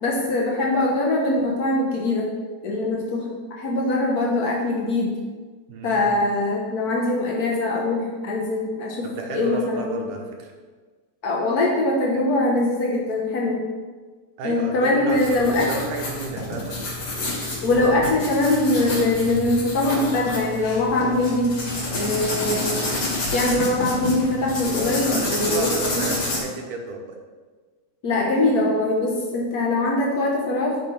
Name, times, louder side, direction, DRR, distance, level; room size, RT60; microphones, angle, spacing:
voice 1, 0.0-2.3 2.6-5.2 5.8-9.1 9.3-9.8 11.2-13.6 14.4-15.7 17.6-21.6 21.9-22.7 23.3-26.1 28.0-30.8, left 2 dB, 75° left, -2 dB, 0.8 m, -22 dB
voice 2, 5.7-6.2 9.0-10.5 14.4-16.8 25.1-27.2, right 3 dB, 90° right, 2 dB, 2.8 m, -32 dB
sound 1, 15.1-26.4, left 2 dB, 55° left, 3.7 m, -29 dB
10.5 x 5.3 x 5.6 m, 1.4 s
omnidirectional pair, 3.5 m